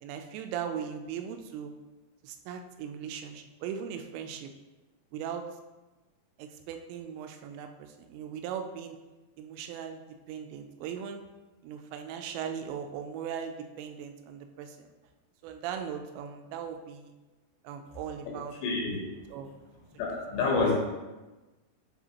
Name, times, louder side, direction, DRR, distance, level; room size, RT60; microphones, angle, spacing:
voice 1, 0.0-1.7 2.2-4.5 5.1-5.5 6.4-9.0 9.4-10.0 10.3-11.2 11.6-14.9 15.4-17.1 17.6-18.5 19.3-19.5, right 8 dB, 85° right, 6 dB, 2.7 m, -38 dB
voice 2, 18.6-19.0 20.0-20.7, left 4 dB, 80° left, -2 dB, 3.2 m, -27 dB
9.7 x 4.1 x 2.8 m, 1.1 s
omnidirectional pair, 5.1 m